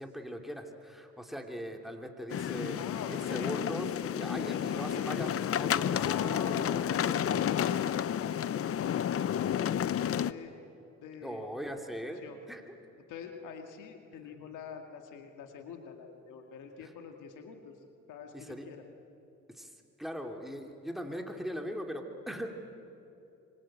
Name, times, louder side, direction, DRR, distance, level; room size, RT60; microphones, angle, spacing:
voice 1, 0.0-7.5 11.2-12.6 16.8-16.9 18.3-18.7 19.5-19.7 20.0-22.5, equal, ahead, 3 dB, 2.9 m, -40 dB
sound 1, 2.3-10.3, left 9 dB, 50° left, 0.7 m, -31 dB
voice 2, 2.8-3.6 4.5-5.5 5.9-7.2 7.5-9.1 9.4-10.5 11.0-11.5 12.2-12.4 13.0-17.8 18.1-18.8, left 7 dB, 85° left, 4 dB, 2.2 m, -45 dB
26.0 x 23.5 x 8.9 m, 2.8 s
cardioid pair, 90°, 30 cm